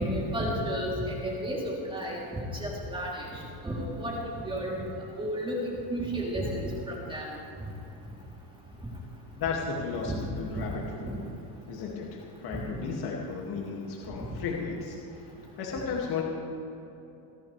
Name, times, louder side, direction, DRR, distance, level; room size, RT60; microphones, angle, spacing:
voice 1, 0.0-4.2 4.4-4.8 5.2-5.6 5.9-7.4 10.0-10.2, equal, 10° right, -4 dB, 3.4 m, -32 dB
voice 2, 9.4-11.2 11.6-15.0 15.6-16.2, left 5 dB, 50° left, -2 dB, 2.5 m, -34 dB
29.5 x 11.0 x 3.4 m, 2.9 s
cardioid pair, 125°, 49 cm